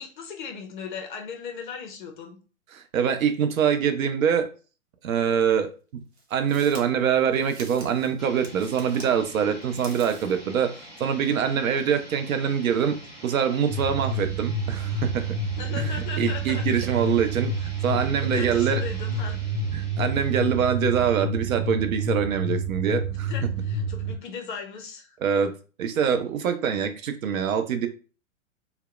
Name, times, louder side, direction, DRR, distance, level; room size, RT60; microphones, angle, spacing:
voice 1, 0.0-2.4 15.5-16.9 17.9-19.4 23.3-25.2, left 6 dB, 40° left, 0.5 m, -38 dB
voice 2, 2.7-4.5 5.0-6.0 6.3-10.7 11.0-15.4 15.7-18.8 19.7-23.3 25.2-27.9, right 7 dB, 85° right, 0.5 m, -24 dB
sound 1, 5.2-5.3 6.1-9.1 9.6-10.4, right 3 dB, 50° right, 0.9 m, -45 dB
sound 2, 8.2-21.0, equal, ahead, 1.0 m, -46 dB
sound 3, 13.7-24.1, right 2 dB, 25° right, 0.3 m, -29 dB
2.7 x 2.0 x 2.3 m
hypercardioid pair, 125°, 40 cm